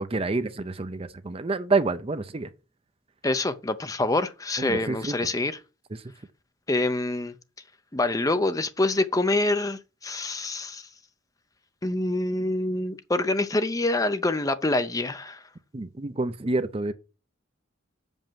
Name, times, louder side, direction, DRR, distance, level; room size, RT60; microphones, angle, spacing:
voice 1, 0.0-2.5 4.6-5.2 5.9-6.0 15.7-16.9, right 3 dB, 30° right, 0.6 m, -28 dB
voice 2, 3.2-5.6 6.7-7.3 7.9-10.8 11.8-15.4, left 2 dB, 20° left, 0.6 m, -26 dB
7.2 x 5.4 x 7.4 m
head